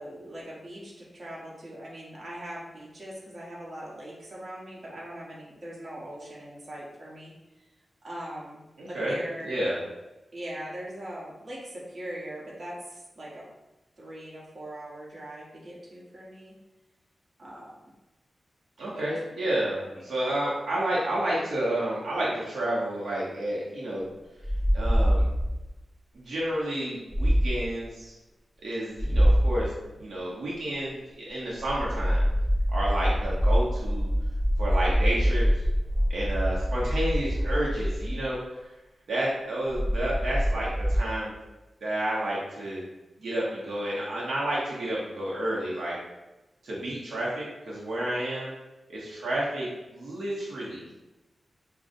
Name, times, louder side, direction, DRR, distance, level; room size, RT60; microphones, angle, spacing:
voice 1, 0.0-7.3 8.0-8.6 8.9-9.5 10.3-13.4 14.0-16.5 17.4-17.7 18.8-19.0, right 1 dB, 50° right, -6 dB, 1.2 m, -40 dB
voice 2, 8.8-9.1 9.4-9.8 18.8-24.1 24.7-25.3 26.1-28.1 28.6-29.7 30.0-32.2 32.7-34.1 34.6-35.5 36.1-38.4 39.1-41.3 41.8-42.8 43.2-46.0 46.6-48.5 48.9-50.8, right 1 dB, 90° right, -6 dB, 0.9 m, -30 dB
sound 1, 24.4-25.7 27.1-27.7 29.0-29.7 31.6-38.3 39.7-41.0, equal, 25° right, 0.8 m, -25 dB
5.0 x 2.3 x 2.6 m, 1.0 s
wide cardioid pair, 115°, 0 cm